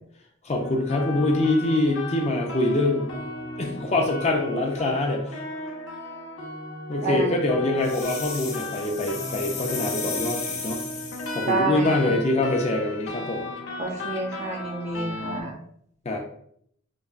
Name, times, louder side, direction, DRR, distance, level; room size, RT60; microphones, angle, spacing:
voice 1, 0.4-3.1 3.6-5.4 6.9-10.8 11.3-13.5 16.0-16.2, left 2 dB, 30° left, 1 dB, 0.4 m, -24 dB
sound 1, 0.6-15.4, left 2 dB, 60° left, 0.8 m, -36 dB
voice 2, 7.0-7.4 11.5-12.1 13.8-15.6, right 2 dB, 35° right, 0 dB, 0.7 m, -29 dB
sound 2, 7.8-11.5, left 5 dB, 85° left, 0.9 m, -34 dB
5.2 x 2.2 x 2.4 m, 0.67 s
head